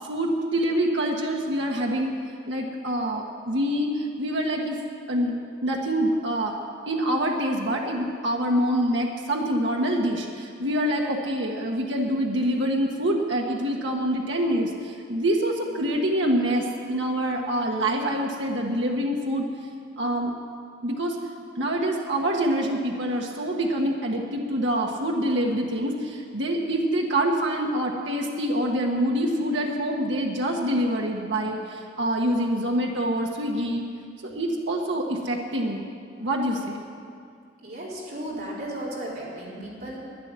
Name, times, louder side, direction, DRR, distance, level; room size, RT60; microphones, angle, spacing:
voice 1, 0.1-2.1 2.5-4.8 5.1-5.3 5.6-6.5 6.9-19.5 20.0-20.3 20.8-21.1 21.6-33.8 34.2-35.8 36.2-36.8, right 1 dB, 70° right, 0 dB, 1.5 m, -26 dB
voice 2, 37.6-40.0, right 1 dB, 50° right, -6 dB, 4.2 m, -35 dB
12.0 x 10.5 x 9.7 m, 2.3 s
head